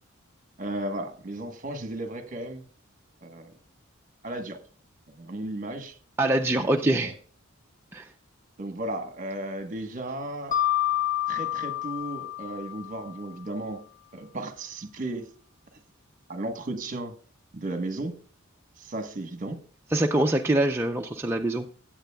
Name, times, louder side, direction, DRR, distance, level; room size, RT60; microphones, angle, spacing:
voice 1, 0.6-2.6 3.2-3.5 4.2-4.6 5.1-6.0 6.6-7.1 8.6-10.6 11.3-13.8 14.1-15.3 16.3-17.1 17.5-18.1 18.8-19.6, right 1 dB, 40° right, 1.2 m, -34 dB
voice 2, 6.2-7.1 7.9-8.1 19.9-21.7, right 1 dB, 10° right, 0.5 m, -24 dB
Mallet percussion, 10.5-13.3, left 12 dB, 40° left, 0.9 m, -28 dB
16.0 x 8.9 x 2.3 m
head